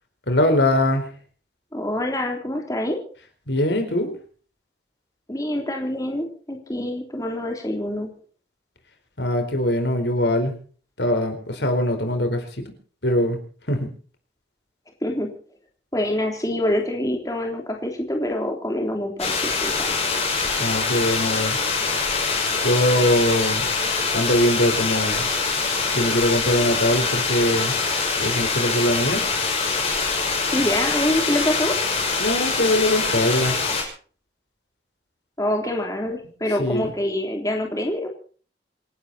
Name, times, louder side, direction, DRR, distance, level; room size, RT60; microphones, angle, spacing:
voice 1, 0.3-1.1 3.5-4.1 9.2-10.5 11.0-12.7 13.0-13.4 13.7-13.9 20.6-21.6 22.6-23.7 24.1-25.2 25.9-27.7 28.2-29.2 32.2-33.6 36.6-36.9, left 1 dB, 80° left, 6 dB, 4.4 m, -22 dB
voice 2, 1.7-3.0 5.3-8.1 15.0-15.3 15.9-20.0 30.5-31.8 35.4-38.1, left 1 dB, 20° left, 2 dB, 3.3 m, -25 dB
sound 1, 19.2-33.8, left 4 dB, 35° left, 5.9 m, -24 dB
27.5 x 12.0 x 4.3 m, 0.42 s
head